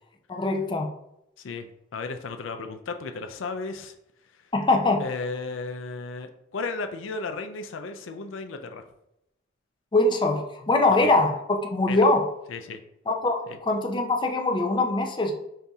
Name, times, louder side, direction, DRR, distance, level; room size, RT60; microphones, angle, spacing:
voice 1, 0.3-0.9 4.5-5.0 9.9-12.3 13.1-15.3, left 2 dB, 25° left, 2 dB, 0.6 m, -23 dB
voice 2, 1.4-3.9 5.0-8.8 10.9-11.2 11.9-12.0 12.5-12.8 13.5-13.6, left 3 dB, 70° left, 7 dB, 0.4 m, -34 dB
5.5 x 2.7 x 3.5 m, 0.83 s
head